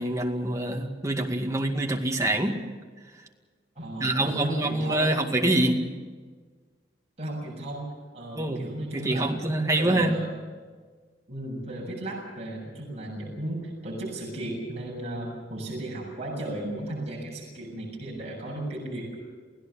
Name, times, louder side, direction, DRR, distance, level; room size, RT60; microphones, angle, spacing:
voice 1, 0.0-2.6 4.0-5.9 8.4-8.6 8.9-10.2, right 1 dB, 15° right, 2.1 m, -25 dB
voice 2, 3.8-5.1 7.2-10.2 11.3-19.2, right 1 dB, 35° right, 7.2 m, -35 dB
29.0 x 16.5 x 7.1 m
head